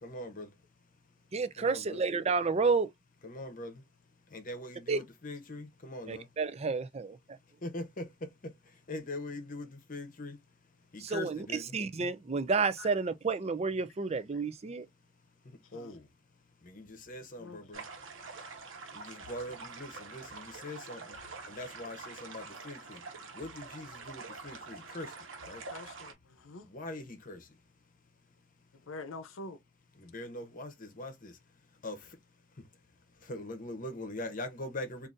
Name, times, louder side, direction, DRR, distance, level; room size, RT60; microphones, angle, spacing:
voice 1, 0.0-0.5 1.6-2.0 3.2-3.8 4.3-6.3 7.6-8.5 8.9-10.4 10.9-11.8 15.7-16.1 16.6-17.8 18.9-21.1 21.5-23.0 23.3-25.1 25.5-25.6 26.7-27.4 30.0-31.3 31.8-32.1 33.2-35.1, left 1 dB, 45° left, 0.9 m, -42 dB
voice 2, 1.3-2.9 4.9-5.0 6.1-7.2 11.0-14.9, right 4 dB, 30° right, 0.4 m, -30 dB
sound 1, 17.7-26.1, right 4 dB, 80° right, 1.1 m, -46 dB
voice 3, 25.7-26.7 28.9-29.6, left 2 dB, 85° left, 0.7 m, -45 dB
3.9 x 2.6 x 2.5 m
head